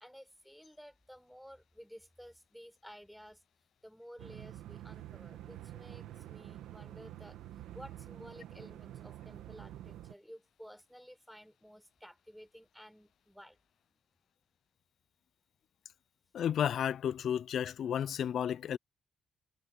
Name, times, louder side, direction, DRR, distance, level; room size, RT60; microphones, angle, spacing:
voice 1, 0.0-3.4 3.8-13.6 13.9-14.0, equal, ahead, 4.5 m, -54 dB
sound 1, 4.2-10.1, right 13 dB, 85° right, 1.7 m, -48 dB
voice 2, 16.3-18.8, left 9 dB, 65° left, 0.4 m, -32 dB
cardioid pair, 90°, 0 cm